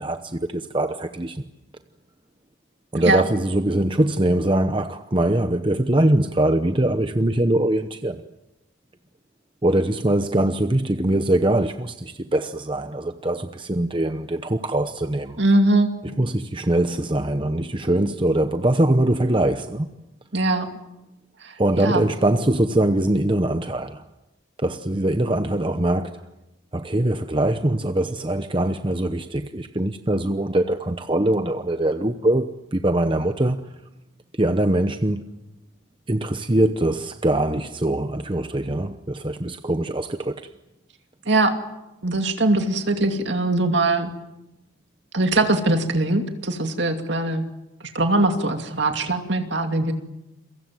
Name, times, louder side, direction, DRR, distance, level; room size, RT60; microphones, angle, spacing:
voice 1, 0.0-1.4 2.9-8.2 9.6-15.4 16.2-19.9 21.6-24.0 24.6-26.2 26.7-33.6 34.4-35.2 36.1-40.5, right 1 dB, 25° right, 0.8 m, -22 dB
voice 2, 15.4-15.9 20.3-20.7 21.8-22.0 41.3-41.6 42.0-44.1 45.1-47.4 47.8-49.9, right 2 dB, 55° right, 2.6 m, -21 dB
29.0 x 23.5 x 7.7 m
head